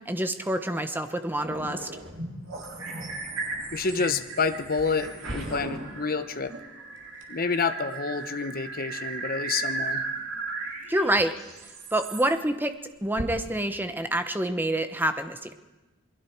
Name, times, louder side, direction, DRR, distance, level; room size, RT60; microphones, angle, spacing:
voice 1, 0.0-1.9 10.9-11.4 11.9-15.5, right 1 dB, 10° right, 8 dB, 1.1 m, -27 dB
sound 1, 1.4-12.2, right 3 dB, 75° right, 5.8 m, -36 dB
voice 2, 3.7-6.5 7.3-10.0, left 4 dB, 45° left, 9 dB, 1.0 m, -28 dB
sound 2, 4.8-13.2, right 1 dB, 55° right, 3.0 m, -46 dB
27.5 x 20.5 x 4.7 m, 1.1 s
head